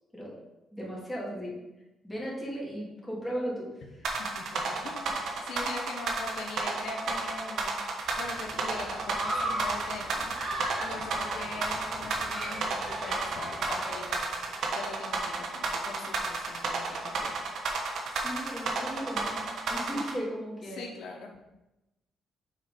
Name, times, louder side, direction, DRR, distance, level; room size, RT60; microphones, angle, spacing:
voice 1, 0.7-1.5 2.0-4.1 18.1-20.9, equal, 5° left, -5 dB, 2.7 m, -36 dB
sound 1, 4.0-20.1, right 4 dB, 70° right, 1.2 m, -31 dB
voice 2, 4.2-7.7 8.2-10.4 10.8-14.2 14.7-17.3 20.7-21.3, left 3 dB, 75° left, 0 dB, 1.0 m, -41 dB
Human group actions, 8.0-14.6, right 1 dB, 35° right, 2.0 m, -38 dB
6.2 x 4.5 x 5.1 m, 0.98 s
cardioid pair, 90°, 0 cm